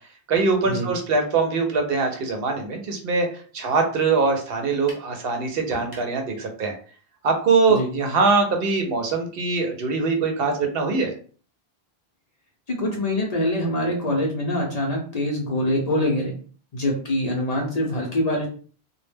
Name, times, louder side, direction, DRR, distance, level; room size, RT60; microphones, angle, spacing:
voice 1, 0.3-3.3 3.5-6.7 7.2-11.1, right 4 dB, 70° right, 4 dB, 0.8 m, -22 dB
sound 1, 4.9-5.1 5.7-6.2, right 1 dB, 25° right, 0.8 m, -40 dB
voice 2, 12.7-16.3 16.7-18.5, left 1 dB, 45° left, -1 dB, 0.6 m, -24 dB
2.1 x 2.1 x 3.2 m, 0.41 s
omnidirectional pair, 1.0 m